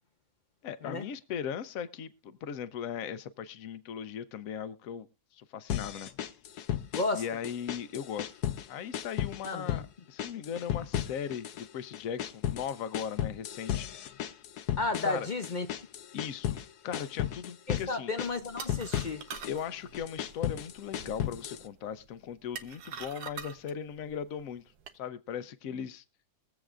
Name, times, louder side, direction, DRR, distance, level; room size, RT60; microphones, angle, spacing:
voice 1, 0.6-5.1 5.3-6.1 6.5-6.6 7.1-8.3 8.7-13.9 15.0-15.3 16.1-18.1 19.5-24.6 24.9-26.0, left 8 dB, 65° left, 1.1 m, -38 dB
sound 1, 5.7-7.2 7.4-8.7 8.9-9.9 10.2-11.7 11.9-16.7 16.9-17.9 18.2-19.6 19.9-21.6, left 11 dB, 85° left, 1.3 m, -34 dB
voice 2, 6.9-7.2 9.4-9.8 14.8-15.7 17.7-19.2, left 3 dB, 45° left, 0.6 m, -32 dB
sound 2, 18.2-25.0, right 7 dB, 85° right, 1.3 m, -46 dB
22.5 x 7.7 x 2.4 m
omnidirectional pair, 1.6 m